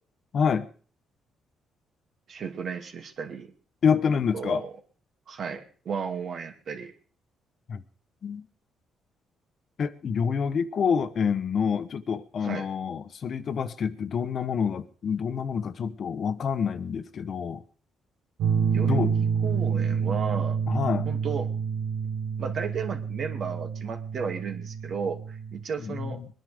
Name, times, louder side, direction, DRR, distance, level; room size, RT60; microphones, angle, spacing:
voice 1, 0.3-0.7 3.8-4.6 7.7-7.8 8.2-8.4 9.8-17.6 18.9-19.1 20.7-21.1 25.8-26.3, left 6 dB, 55° left, 1.0 m, -27 dB
voice 2, 2.3-3.5 4.3-4.7 5.3-6.9 12.4-12.7 18.7-20.6 21.1-21.5 22.4-26.2, right 6 dB, 60° right, 2.5 m, -34 dB
sound 1, 18.4-25.6, right 6 dB, 80° right, 2.3 m, -28 dB
21.5 x 10.0 x 5.1 m
cardioid pair, 90°, 0 cm